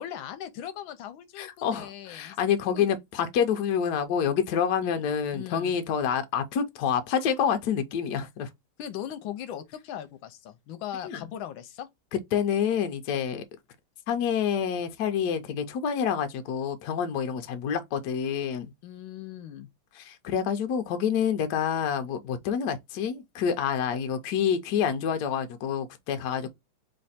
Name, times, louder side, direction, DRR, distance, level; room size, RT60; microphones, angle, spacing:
voice 1, 0.0-2.4 2.7-2.9 4.8-5.0 5.3-5.7 8.8-11.9 18.8-19.7 26.4-26.5, left 10 dB, 85° left, 1.4 m, -39 dB
voice 2, 1.4-8.5 11.0-11.2 12.3-13.4 14.1-18.7 20.0-26.5, left 8 dB, 70° left, 1.2 m, -27 dB
3.4 x 3.2 x 4.1 m
omnidirectional pair, 2.1 m